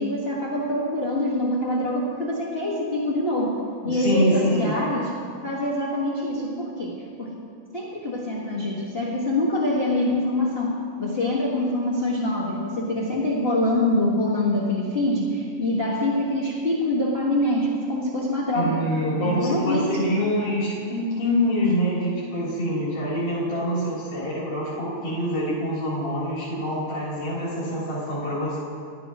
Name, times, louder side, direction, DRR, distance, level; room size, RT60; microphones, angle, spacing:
voice 1, 0.0-7.4 7.7-18.8 19.2-20.1, left 1 dB, 40° left, -6 dB, 0.8 m, -25 dB
voice 2, 3.8-4.7 18.5-28.6, equal, 80° left, -9 dB, 4.8 m, -25 dB
17.0 x 12.0 x 2.9 m, 2.4 s
omnidirectional pair, 3.6 m